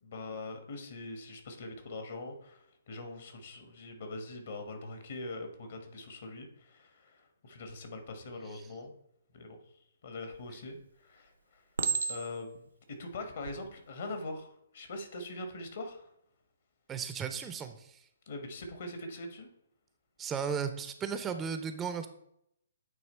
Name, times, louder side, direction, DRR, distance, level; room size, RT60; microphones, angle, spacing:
voice 1, 0.0-8.9 9.3-9.6 10.0-11.6 12.1-16.1 18.3-19.5, left 2 dB, 55° left, 6 dB, 1.3 m, -43 dB
Chink clink, 10.3-10.8 11.8-12.6 13.3-13.6, right 5 dB, 80° right, 0.6 m, -33 dB
voice 2, 16.9-18.0 20.2-22.1, right 6 dB, 15° right, 9 dB, 0.4 m, -35 dB
8.8 x 3.0 x 4.3 m, 0.75 s
figure-of-eight pair, 130°, 0 cm